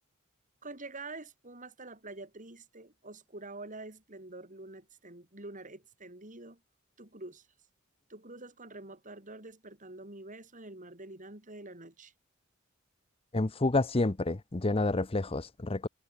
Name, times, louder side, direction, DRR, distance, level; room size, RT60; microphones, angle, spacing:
voice 1, 0.6-6.6 7.0-7.5 8.1-12.1, right 2 dB, 40° right, 6.1 m, -46 dB
voice 2, 13.3-15.9, left 2 dB, 30° left, 0.8 m, -29 dB
head